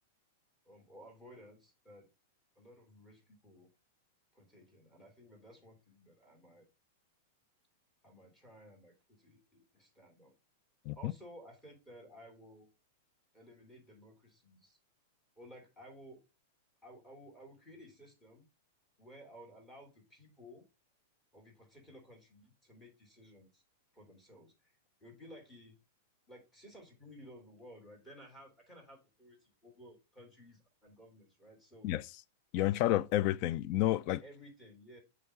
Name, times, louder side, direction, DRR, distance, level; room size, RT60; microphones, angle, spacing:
voice 1, 0.6-2.1 2.5-3.7 4.3-6.7 8.0-10.4 10.9-12.7 13.3-14.8 15.4-16.2 16.8-18.5 19.0-20.6 21.3-23.6 23.9-25.8 26.3-31.9 34.2-35.0, equal, 15° left, 3.1 m, -56 dB
voice 2, 32.5-34.2, left 14 dB, 50° left, 0.4 m, -30 dB
7.6 x 3.0 x 4.8 m
hypercardioid pair, 105°, 0 cm